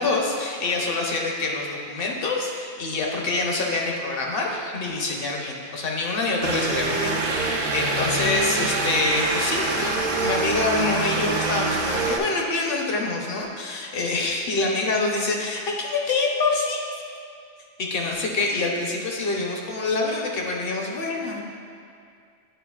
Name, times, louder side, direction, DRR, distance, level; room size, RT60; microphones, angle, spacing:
voice 1, 0.0-16.9 17.3-17.4 17.8-21.4, left 3 dB, 60° left, 0 dB, 0.9 m, -26 dB
sound 1, 6.4-12.2, right 3 dB, 55° right, 0.6 m, -25 dB
8.9 x 4.7 x 2.3 m, 2.3 s
omnidirectional pair, 1.1 m